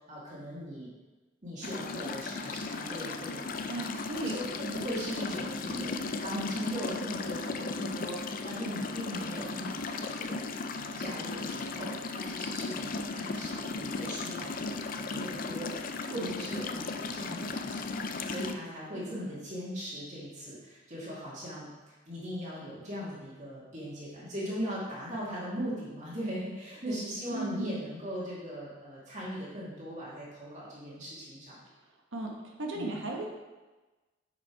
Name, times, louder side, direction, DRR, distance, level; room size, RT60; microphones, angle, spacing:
voice 1, 0.1-0.9 1.4-3.8 4.2-18.0 18.3-31.6 32.7-33.0, equal, 35° right, -7 dB, 1.9 m, -39 dB
sound 1, 1.6-18.5, left 3 dB, 45° left, 0.4 m, -36 dB
voice 2, 3.7-4.3 5.7-5.9 16.0-16.2 19.0-19.4 27.3-27.8 32.1-33.3, right 2 dB, 70° right, 0 dB, 1.4 m, -37 dB
8.3 x 5.1 x 4.7 m, 1.2 s
head